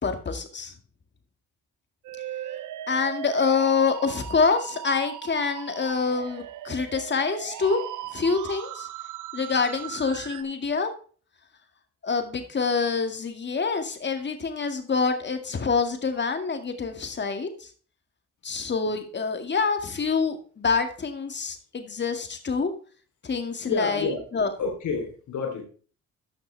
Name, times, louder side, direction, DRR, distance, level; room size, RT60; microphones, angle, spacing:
voice 1, 0.0-0.7 2.9-7.8 8.1-8.9 9.3-10.9 12.0-17.7 18.4-22.7 23.2-24.5, left 5 dB, 35° left, 6 dB, 2.0 m, -26 dB
Musical instrument, 2.0-10.4, right 12 dB, 85° right, 0.8 m, -38 dB
voice 2, 23.6-24.2 24.6-25.6, left 4 dB, 75° left, 3 dB, 3.5 m, -29 dB
12.5 x 6.5 x 3.3 m, 0.40 s
cardioid pair, 90°, 30 cm